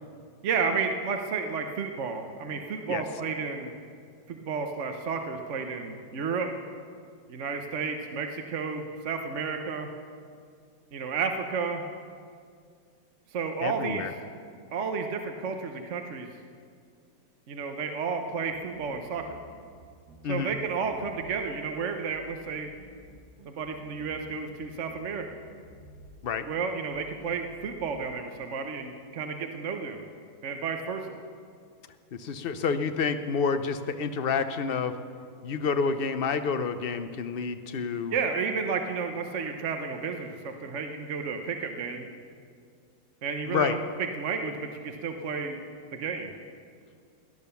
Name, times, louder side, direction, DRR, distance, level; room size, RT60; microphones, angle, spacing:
voice 1, 0.4-3.7 4.3-6.5 7.3-9.9 10.9-11.8 13.3-14.1 14.7-16.3 17.5-19.4 20.3-22.7 23.4-25.2 26.5-30.0 30.4-31.2 38.1-42.1 43.2-43.8 44.2-45.6 45.9-46.3, right 5 dB, 50° right, 5 dB, 1.1 m, -32 dB
voice 2, 13.6-14.1 20.2-20.6 26.2-26.4 32.1-34.9 35.4-38.2 43.5-43.8, left 5 dB, 50° left, 9 dB, 0.7 m, -29 dB
sound 1, 18.3-19.8 20.1-21.3 21.9-22.2 22.5-24.6 24.9-26.1 26.7-27.0 27.3-27.9, right 1 dB, 70° right, 2.0 m, -52 dB
17.0 x 10.5 x 7.0 m, 2.2 s
omnidirectional pair, 1.8 m